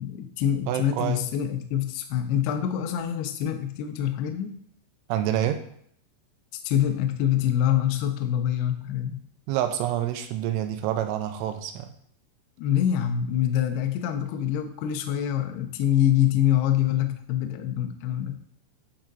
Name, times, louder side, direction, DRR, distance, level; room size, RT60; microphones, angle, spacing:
voice 1, 0.0-4.5 6.6-9.2 12.6-18.4, left 10 dB, 80° left, 6 dB, 2.3 m, -25 dB
voice 2, 0.7-1.2 5.1-5.6 9.5-11.9, right 11 dB, 80° right, 7 dB, 3.0 m, -27 dB
12.0 x 4.3 x 4.0 m, 0.66 s
omnidirectional pair, 5.6 m